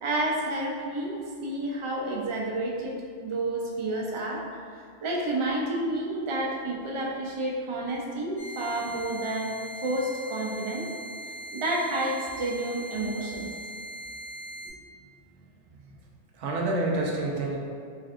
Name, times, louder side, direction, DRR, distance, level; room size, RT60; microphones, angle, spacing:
voice 1, 0.0-2.9 3.2-4.4 4.7-9.5 9.8-10.8 11.5-13.5, right 1 dB, 40° right, -2 dB, 0.4 m, -30 dB
sound 1, 8.4-14.7, equal, 85° left, 1.1 m, -40 dB
voice 2, 14.7-15.1 15.3-15.9 16.3-17.6, right 2 dB, 85° right, -2 dB, 1.0 m, -30 dB
3.9 x 3.3 x 2.5 m, 2.3 s
omnidirectional pair, 1.2 m